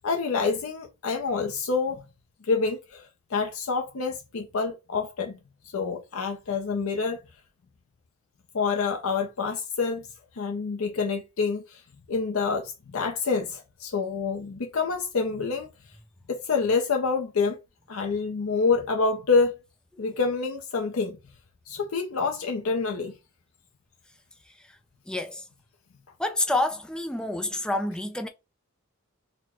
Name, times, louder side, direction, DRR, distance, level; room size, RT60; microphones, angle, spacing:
voice 1, 0.0-2.0 2.4-5.4 5.7-7.2 8.5-10.1 10.4-11.8 12.1-15.7 16.3-17.6 17.9-19.6 20.0-21.2 21.7-23.1 27.7-27.8, left 4 dB, 80° left, 0.6 m, -27 dB
voice 2, 25.1-25.5 26.2-28.3, left 1 dB, 5° left, 0.4 m, -28 dB
4.2 x 2.1 x 4.2 m
head